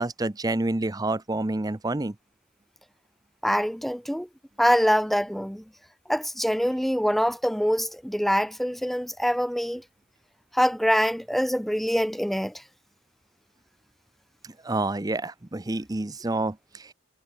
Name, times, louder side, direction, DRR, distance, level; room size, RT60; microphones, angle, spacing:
voice 1, 0.0-2.1 14.4-16.9, right 2 dB, 15° right, 0.5 m, -28 dB
voice 2, 3.4-4.3 4.6-5.6 6.1-9.8 10.5-12.6, equal, ahead, 0.9 m, -24 dB
head